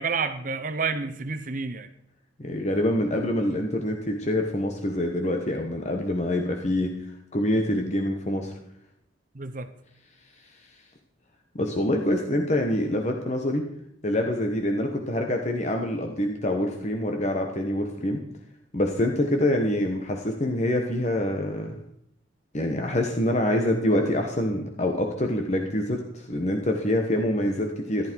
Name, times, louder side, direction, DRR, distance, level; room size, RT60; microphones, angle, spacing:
voice 1, 0.0-1.9 9.3-9.7, right 4 dB, 45° right, 9 dB, 0.8 m, -29 dB
voice 2, 2.4-6.9 7.3-8.5 11.5-13.7 14.0-18.2 18.7-21.8 22.5-28.1, left 1 dB, 40° left, 3 dB, 1.2 m, -26 dB
14.5 x 11.5 x 4.6 m, 0.74 s
head